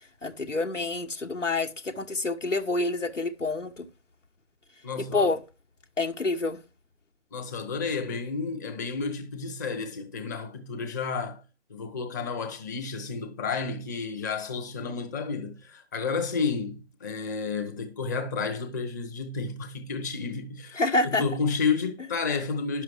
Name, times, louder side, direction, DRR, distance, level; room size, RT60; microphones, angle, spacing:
voice 1, 0.2-3.9 5.0-5.4 6.0-6.6 20.8-21.2, left 2 dB, 85° left, 1.3 m, -27 dB
voice 2, 4.8-5.3 7.3-11.4 11.7-22.8, left 4 dB, 15° left, 0.8 m, -31 dB
10.5 x 6.9 x 4.5 m
figure-of-eight pair, 145°, 36 cm